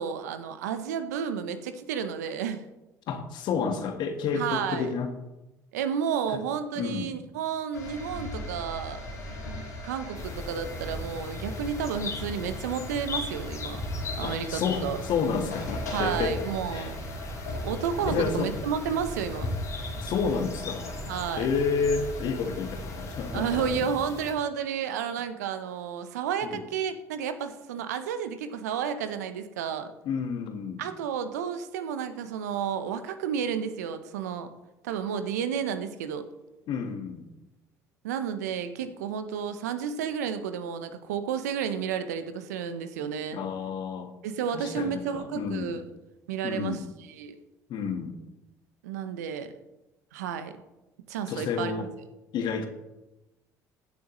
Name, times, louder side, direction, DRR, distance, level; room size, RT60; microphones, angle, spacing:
voice 1, 0.0-2.6 4.3-4.9 5.7-9.0 9.8-13.8 14.1-15.0 15.9-17.0 17.6-19.5 21.1-21.5 23.3-29.9 30.8-34.5 34.8-36.3 38.0-43.4 44.2-45.8 46.3-46.8 47.1-47.4 48.8-49.5 50.1-50.5 51.1-51.9, right 7 dB, 80° right, 10 dB, 0.8 m, -31 dB
voice 2, 3.1-5.1 6.7-7.1 14.2-16.4 16.7-16.9 18.1-18.5 20.0-20.9 21.4-23.9 26.4-26.6 30.0-30.8 36.7-37.3 43.3-44.1 44.5-45.8 46.4-46.9 47.7-48.2 51.3-51.9 52.3-52.7, left 5 dB, 60° left, 6 dB, 1.4 m, -30 dB
sound 1, 7.7-23.7, left 1 dB, 90° left, 2.1 m, -38 dB
sound 2, 10.1-24.3, left 2 dB, 40° left, 2.5 m, -39 dB
16.0 x 7.4 x 3.1 m, 1.0 s
hypercardioid pair, 60°, 9 cm